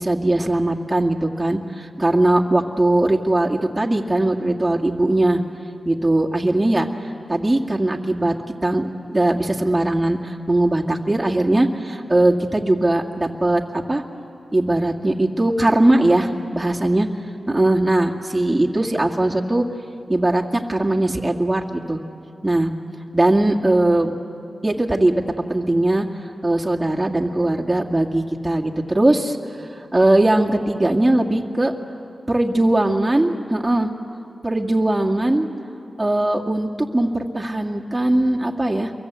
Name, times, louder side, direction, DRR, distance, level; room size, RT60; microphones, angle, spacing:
voice 1, 0.0-5.4 5.9-6.9 7.3-8.3 8.6-14.0 14.5-17.1 17.5-19.6 20.1-22.0 22.4-22.7 23.1-24.1 24.6-25.2 25.5-26.1 26.4-31.7 32.3-33.9 34.4-35.5 36.0-38.9, right 1 dB, 20° right, -1 dB, 2.2 m, -20 dB
28.5 x 23.5 x 8.3 m, 2.5 s
cardioid pair, 50°, 0 cm